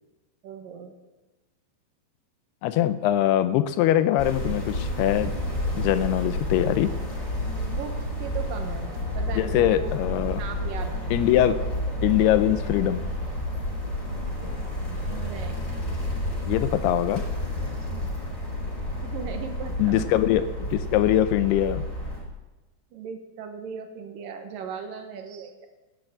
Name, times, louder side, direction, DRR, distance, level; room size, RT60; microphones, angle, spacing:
voice 1, 0.4-0.9 7.6-9.9 10.4-11.4 15.1-15.6 19.0-20.1 22.9-25.7, right 6 dB, 65° right, 5 dB, 2.4 m, -38 dB
voice 2, 2.6-5.3 5.7-6.9 9.4-10.4 11.1-11.6 12.0-13.0 16.5-17.2 19.8-21.8, left 12 dB, 80° left, 13 dB, 2.4 m, -22 dB
sound 1, 4.2-22.2, left 1 dB, 20° left, 3.7 m, -30 dB
13.5 x 10.0 x 8.0 m, 1.1 s
omnidirectional pair, 5.1 m